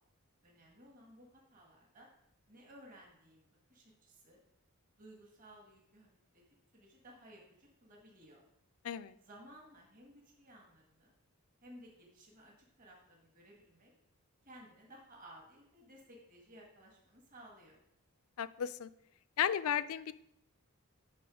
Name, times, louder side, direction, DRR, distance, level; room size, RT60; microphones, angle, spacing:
voice 1, 0.4-2.1 2.5-4.4 4.9-6.4 6.7-8.4 9.2-11.1 11.6-13.9 14.4-17.8, right 1 dB, 35° right, -1 dB, 1.7 m, -58 dB
voice 2, 18.4-18.9 19.4-20.1, left 9 dB, 70° left, 15 dB, 0.4 m, -34 dB
11.0 x 3.8 x 4.9 m, 0.76 s
head